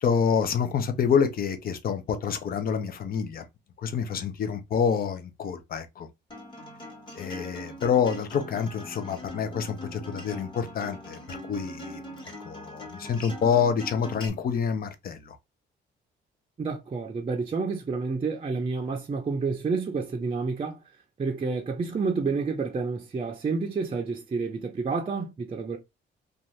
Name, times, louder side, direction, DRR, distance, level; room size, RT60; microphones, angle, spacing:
voice 1, 0.0-3.5 3.8-6.1 7.2-12.0 12.4-15.4, left 7 dB, 50° left, 0.6 m, -27 dB
Acoustic guitar, 6.3-14.3, left 1 dB, 25° left, 1.3 m, -41 dB
voice 2, 16.6-20.8 21.2-25.8, right 4 dB, 30° right, 0.5 m, -29 dB
2.6 x 2.4 x 3.0 m
cardioid pair, 90°, 20 cm